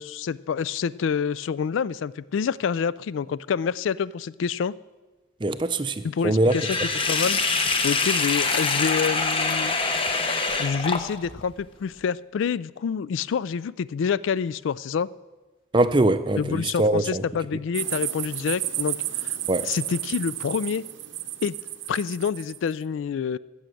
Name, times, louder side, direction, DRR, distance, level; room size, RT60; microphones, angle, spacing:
voice 1, 0.0-4.7 6.0-6.8 7.1-7.4 7.8-10.0 10.6-15.1 16.4-19.0 19.2-19.3 19.6-20.8 21.4-21.5 21.9-23.4, left 6 dB, 85° left, 0.3 m, -27 dB
voice 2, 5.4-6.6 15.7-17.2 19.5-19.7, right 2 dB, 25° right, 0.5 m, -22 dB
Sink (filling or washing), 6.5-11.4, left 3 dB, 25° left, 0.8 m, -25 dB
sound 1, 17.7-22.6, right 13 dB, 80° right, 0.7 m, -32 dB
14.0 x 7.1 x 7.7 m
head